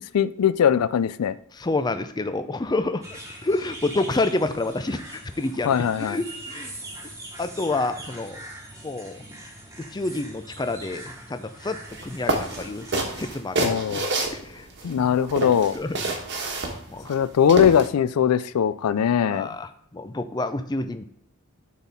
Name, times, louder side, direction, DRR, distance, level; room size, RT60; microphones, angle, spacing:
voice 1, 0.1-1.3 5.7-6.2 13.6-14.1 14.8-15.7 17.1-19.5, left 8 dB, 85° left, 15 dB, 0.4 m, -21 dB
voice 2, 1.5-6.7 7.4-8.4 8.8-9.2 9.8-11.8 12.0-12.9 13.2-14.7 15.0-15.2 15.7-16.0 16.9-17.2 19.3-21.1, left 2 dB, 20° left, 9 dB, 0.4 m, -29 dB
sound 1, 3.0-13.3, right 1 dB, 15° right, 1.3 m, -42 dB
sound 2, 11.9-12.0 12.3-14.9 15.3-17.9, right 2 dB, 55° right, 1.3 m, -27 dB
12.0 x 4.2 x 3.6 m, 0.73 s
head